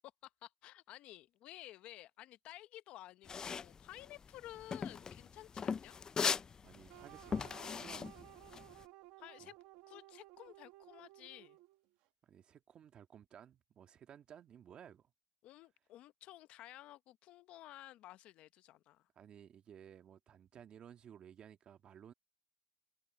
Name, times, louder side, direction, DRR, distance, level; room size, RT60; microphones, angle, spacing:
voice 1, 0.2-6.0 9.2-9.5 9.9-11.6 15.4-19.1, left 14 dB, 75° left, 0.8 m, -54 dB
sound 1, 3.3-8.8, left 6 dB, 35° left, 0.4 m, -39 dB
voice 2, 6.6-8.3 9.4-9.5 12.2-15.1 19.2-22.1, right 9 dB, 55° right, 1.8 m, -57 dB
sound 2, 6.9-11.8, right 18 dB, 85° right, 1.3 m, -57 dB
supercardioid pair, 80°, 2 cm